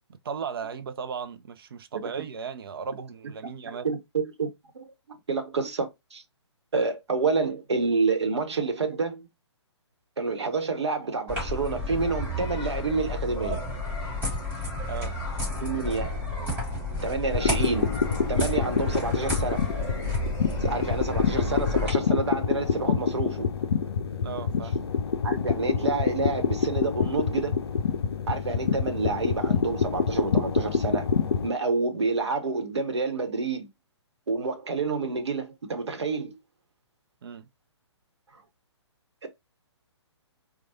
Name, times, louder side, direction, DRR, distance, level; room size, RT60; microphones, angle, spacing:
voice 1, 0.2-3.9 14.9-15.1 24.2-24.9 37.2-37.5, right 6 dB, 55° right, 0.5 m, -36 dB
voice 2, 3.7-4.5 4.7-4.9 5.3-6.2 6.7-9.3 10.2-13.6 15.6-16.2 17.0-17.9 18.3-19.6 20.6-23.5 25.2-27.6 28.3-31.1 31.4-33.7 34.3-36.4 39.2-39.3, right 4 dB, 70° right, 1.0 m, -28 dB
sound 1, 11.3-21.9, left 1 dB, 10° right, 2.2 m, -31 dB
sound 2, 17.3-31.5, left 6 dB, 60° left, 0.5 m, -27 dB
4.6 x 2.3 x 2.7 m
figure-of-eight pair, 130°, 15 cm